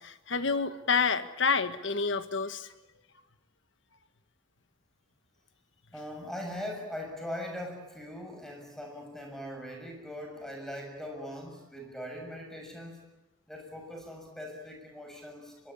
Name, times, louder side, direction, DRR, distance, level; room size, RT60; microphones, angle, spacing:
voice 1, 0.0-2.7, left 5 dB, 65° left, 10 dB, 1.6 m, -28 dB
voice 2, 5.9-13.0 13.5-15.7, left 1 dB, ahead, 2 dB, 6.8 m, -41 dB
24.0 x 23.5 x 8.6 m, 1.0 s
head